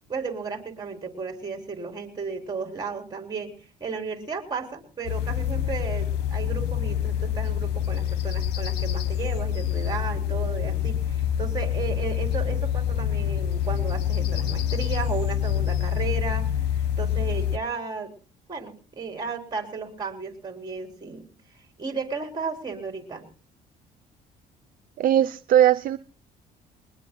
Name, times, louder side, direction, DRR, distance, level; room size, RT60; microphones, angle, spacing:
voice 1, 0.1-3.5 3.8-18.1 18.5-21.2 21.5-23.3, right 5 dB, 25° right, 4 dB, 3.9 m, -34 dB
sound 1, 5.0-17.6, left 10 dB, 90° left, 1.1 m, -26 dB
sound 2, 9.0-9.2 9.6-9.8 10.1-11.0 11.2-13.0 13.3-13.6 13.9-14.1 14.5-14.7 15.0-16.7, left 2 dB, 30° left, 3.1 m, -40 dB
voice 2, 25.0-26.0, right 11 dB, 55° right, 9 dB, 0.7 m, -19 dB
22.0 x 20.0 x 2.3 m, 0.36 s
cardioid pair, 110°, 17 cm